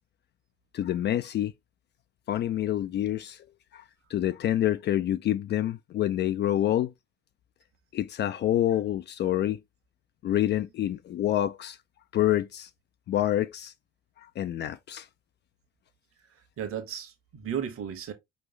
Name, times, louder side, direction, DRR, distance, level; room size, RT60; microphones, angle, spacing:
voice 1, 0.7-1.5 2.3-3.4 3.7-3.8 4.1-6.9 7.9-9.6 10.2-11.8 12.1-12.7 13.1-13.7 14.4-15.1, left 12 dB, 35° left, 0.4 m, -27 dB
voice 2, 16.3-18.1, right 8 dB, 45° right, 1.3 m, -35 dB
5.1 x 3.2 x 3.2 m
figure-of-eight pair, 60°, 30 cm